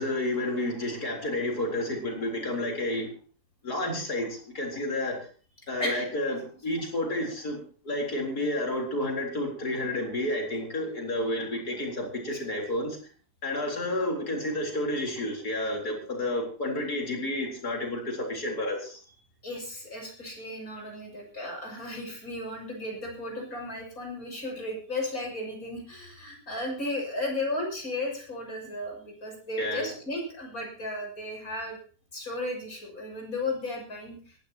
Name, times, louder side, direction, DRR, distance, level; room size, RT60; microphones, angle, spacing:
voice 1, 0.0-3.1 3.6-5.1 5.7-7.6 7.8-13.0 13.4-19.0 29.6-29.9, left 1 dB, 85° left, 1 dB, 4.5 m, -30 dB
voice 2, 19.4-31.8 32.1-34.4, left 1 dB, 65° left, 0 dB, 7.5 m, -35 dB
21.5 x 15.5 x 3.0 m, 0.40 s
omnidirectional pair, 1.6 m